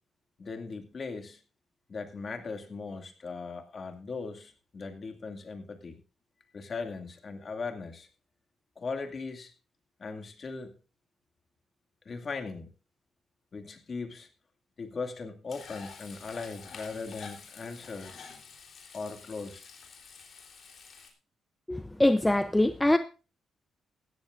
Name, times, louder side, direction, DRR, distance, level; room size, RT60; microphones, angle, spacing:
voice 1, 0.4-1.4 1.9-6.0 6.5-8.1 8.8-9.5 10.0-10.8 12.0-12.7 13.5-14.3 14.8-18.2 18.9-19.6, left 4 dB, 40° left, 2.3 m, -39 dB
Frying (food), 15.5-21.1, left 5 dB, 55° left, 3.6 m, -48 dB
voice 2, 21.7-23.0, left 1 dB, 10° left, 0.6 m, -23 dB
16.0 x 13.5 x 2.6 m
cardioid pair, 110°, 0 cm